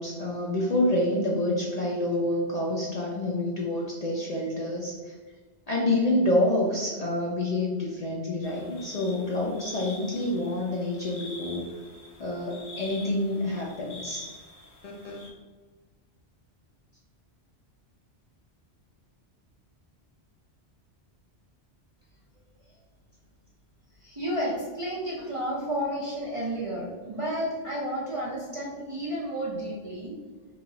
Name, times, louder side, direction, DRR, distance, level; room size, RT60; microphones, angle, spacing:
voice 1, 0.0-5.1 5.7-11.7 12.2-14.3 14.8-15.3, left 1 dB, 55° left, -3 dB, 0.4 m, -28 dB
sound 1, 8.4-15.3, left 2 dB, 85° left, 1.0 m, -46 dB
voice 2, 24.0-30.2, equal, 45° right, -5 dB, 0.4 m, -31 dB
3.0 x 2.4 x 3.8 m, 1.4 s
omnidirectional pair, 1.1 m